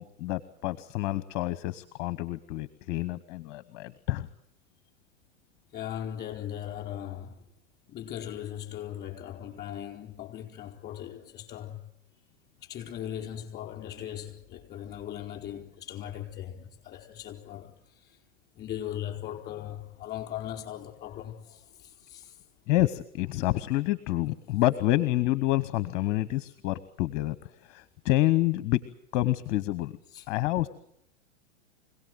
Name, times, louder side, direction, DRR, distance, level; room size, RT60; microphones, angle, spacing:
voice 1, 0.0-4.3 22.7-27.4 27.6-28.8 29.1-30.0 30.3-30.7, left 16 dB, 40° left, 1.0 m, -28 dB
voice 2, 5.7-7.4 7.9-11.8 12.6-17.7 18.0-18.2 18.5-22.4 30.1-30.3, left 11 dB, 25° left, 4.4 m, -39 dB
25.0 x 18.0 x 7.9 m
hypercardioid pair, 110°, 37 cm